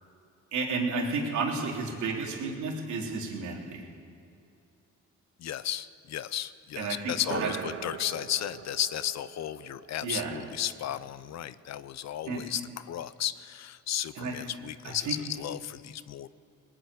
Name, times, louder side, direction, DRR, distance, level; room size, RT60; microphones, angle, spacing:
voice 1, 0.5-3.9 6.8-7.1 7.4-7.5 10.0-10.3 12.3-12.4 14.1-14.3 14.8-15.1, right 4 dB, 75° right, -1 dB, 3.3 m, -32 dB
voice 2, 5.4-12.6 12.9-16.3, left 11 dB, 60° left, 16 dB, 0.7 m, -34 dB
sound 1, 7.1-11.1, right 7 dB, 45° right, 1.0 m, -41 dB
20.0 x 7.7 x 9.5 m, 2.6 s
cardioid pair, 90°, 30 cm